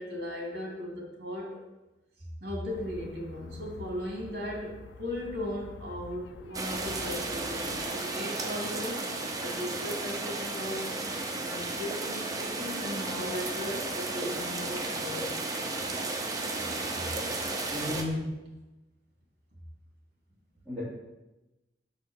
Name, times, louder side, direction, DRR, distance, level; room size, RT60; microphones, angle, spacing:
voice 1, 0.0-1.6 2.4-9.1 9.4-11.0 11.4-15.7 17.6-17.8, left 1 dB, 60° right, -2 dB, 2.8 m, -37 dB
sound 1, 2.7-7.8, left 3 dB, 90° left, 0.5 m, -47 dB
sound 2, 6.5-18.0, right 2 dB, 20° right, 0.8 m, -34 dB
voice 2, 17.7-18.2 20.6-20.8, left 1 dB, 10° left, -15 dB, 3.2 m, -33 dB
6.0 x 5.6 x 6.5 m, 1.0 s
head